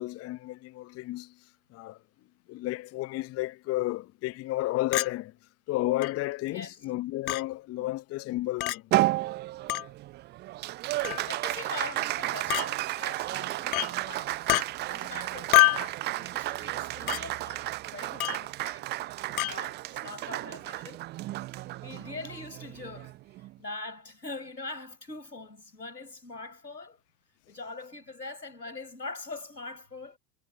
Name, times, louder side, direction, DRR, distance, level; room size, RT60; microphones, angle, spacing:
voice 1, 0.0-2.0 2.5-5.3 5.7-8.9, left 17 dB, 30° left, 0.9 m, -32 dB
Chink clink, 4.9-5.1 6.0-6.1 7.3-7.4 8.6-8.8 9.7-9.9 11.0-11.3 12.5-12.7 13.7-13.9 14.5-14.7 15.5-15.9 17.1-17.2 18.2-18.4 19.4-19.5, left 17 dB, 60° left, 0.6 m, -25 dB
Applause, 8.9-23.6, right 17 dB, 25° right, 0.5 m, -33 dB
voice 2, 11.2-14.6 14.9-18.8 19.2-21.0 21.3-23.1 23.4-27.0 27.5-30.2, left 3 dB, 85° left, 4.9 m, -42 dB
figure-of-eight pair, 80°, 48 cm